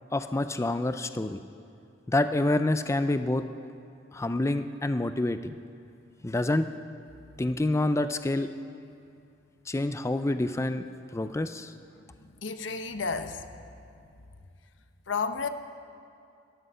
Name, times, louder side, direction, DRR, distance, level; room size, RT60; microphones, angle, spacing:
voice 1, 0.1-1.4 2.1-3.4 4.1-5.6 6.2-6.7 7.4-8.5 9.7-10.8 11.1-11.7, left 2 dB, 15° left, 10 dB, 0.4 m, -27 dB
voice 2, 11.9-13.6 15.1-15.5, left 5 dB, 85° left, 8 dB, 0.9 m, -33 dB
17.5 x 14.0 x 5.6 m, 2.5 s
head